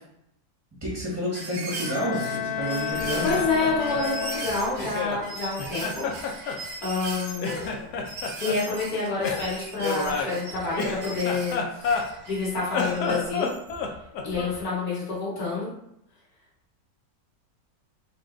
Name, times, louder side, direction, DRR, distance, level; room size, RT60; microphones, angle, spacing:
voice 1, 0.8-3.3, equal, 10° right, -6 dB, 0.9 m, -29 dB
sound 1, 1.3-13.8 14.4-14.5, right 3 dB, 70° right, 1.4 m, -39 dB
Bowed string instrument, 1.7-5.1, left 9 dB, 85° left, 1.3 m, -31 dB
Laughter, 3.0-5.2 5.6-7.1 7.4-8.6 9.2-12.3 12.6-14.6, left 4 dB, 70° left, 1.0 m, -30 dB
voice 2, 3.2-6.0 6.8-7.6 8.4-11.6 12.3-13.5 14.2-15.7, left 3 dB, 55° left, -7 dB, 2.1 m, -28 dB
4.8 x 2.2 x 3.7 m, 0.78 s
omnidirectional pair, 2.0 m